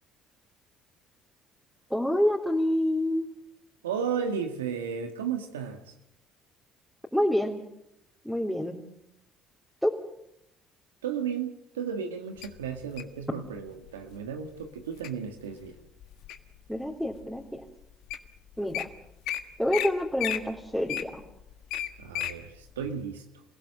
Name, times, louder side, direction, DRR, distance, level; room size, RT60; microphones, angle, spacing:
voice 1, 1.9-3.3 7.1-7.6 8.3-8.8 9.8-9.9 16.7-17.6 18.6-18.9 19.6-21.2, left 1 dB, ahead, -2 dB, 3.5 m, -27 dB
voice 2, 3.8-5.9 11.0-15.8 22.0-23.2, right 7 dB, 90° right, 5 dB, 1.7 m, -34 dB
Wild animals, 12.4-13.2 13.9-14.2 14.6-15.1 15.6-16.6 17.1-17.2 17.8-17.9 18.1-18.3 18.5-18.8 19.3-19.4 19.7-19.9 20.2-22.4 22.8-22.9, left 12 dB, 70° left, 1.6 m, -33 dB
28.0 x 16.5 x 7.6 m, 0.79 s
hypercardioid pair, 60°, 0 cm